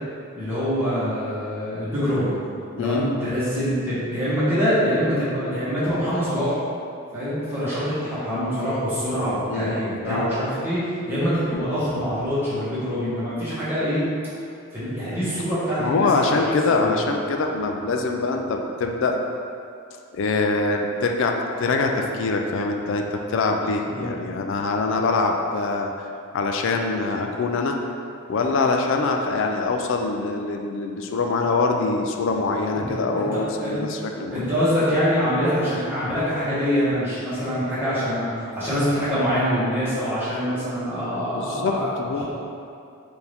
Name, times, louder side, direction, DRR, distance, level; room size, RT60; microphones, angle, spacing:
voice 1, 0.3-2.3 2.8-6.5 7.1-14.0 14.7-16.4 16.8-16.9 23.8-24.2 32.7-32.9 33.2-33.8 34.3-41.9, equal, 10° right, -12 dB, 1.3 m, -24 dB
voice 2, 2.8-3.1 9.5-10.3 15.8-19.2 20.1-23.0 23.3-26.1 26.3-27.8 28.3-34.5 41.4-42.2, left 3 dB, 60° left, 3 dB, 0.3 m, -24 dB
4.6 x 2.6 x 3.4 m, 2.4 s
head